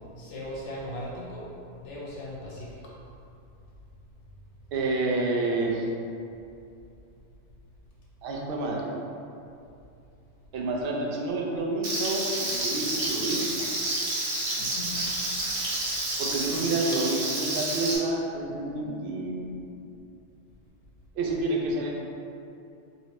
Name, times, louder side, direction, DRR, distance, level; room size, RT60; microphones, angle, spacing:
voice 1, 0.2-1.5 1.7-2.9 14.6-15.1, left 1 dB, 85° left, -4 dB, 1.0 m, -38 dB
voice 2, 4.7-5.8 8.2-8.9 10.5-13.8 14.6-14.7 16.2-19.6 21.2-21.9, right 2 dB, 60° right, -1 dB, 0.7 m, -29 dB
Frying (food), 11.8-18.0, right 2 dB, 80° right, 1.1 m, -29 dB
3.0 x 2.8 x 3.0 m, 2.6 s
omnidirectional pair, 1.2 m